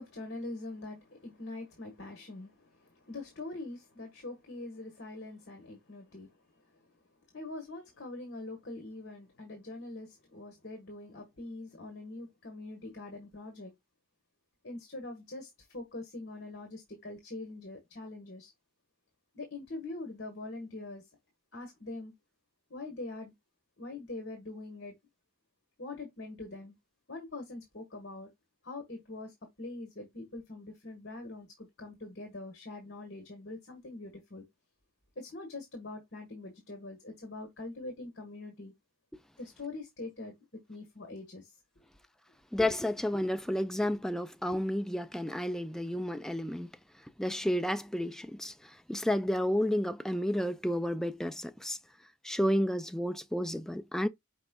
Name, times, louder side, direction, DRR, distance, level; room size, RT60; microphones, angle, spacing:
voice 1, 0.0-6.8 7.3-13.7 14.6-18.5 19.3-21.1 21.5-22.1 22.7-23.3 23.8-24.9 25.8-26.7 27.1-28.3 28.6-34.4 35.1-38.7 39.4-41.6, left 2 dB, 50° left, 1.4 m, -43 dB
voice 2, 42.5-46.7 47.2-48.5 48.9-51.8 52.2-54.1, left 1 dB, ahead, 0.3 m, -31 dB
5.2 x 4.5 x 2.3 m
head